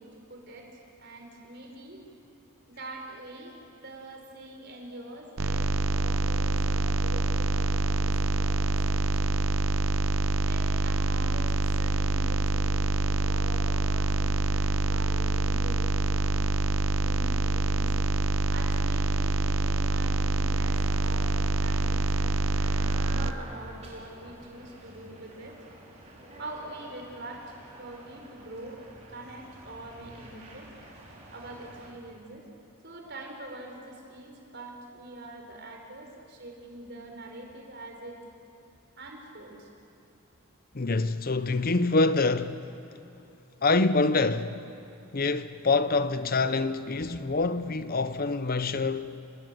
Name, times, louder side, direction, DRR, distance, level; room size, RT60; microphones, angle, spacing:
voice 1, 0.0-2.0 2.7-9.4 10.4-16.5 17.0-18.2 18.5-21.3 21.6-25.6 26.4-30.7 31.3-32.5 32.8-38.2 39.0-39.7, right 2 dB, 50° right, 4.6 m, -44 dB
sound 1, 5.4-23.3, right 2 dB, 70° right, 0.7 m, -26 dB
sound 2, 20.4-31.9, right 1 dB, 30° right, 4.8 m, -48 dB
voice 2, 40.7-42.6 43.6-44.6 45.1-49.2, left 3 dB, 40° left, 0.7 m, -26 dB
29.0 x 20.0 x 9.1 m
head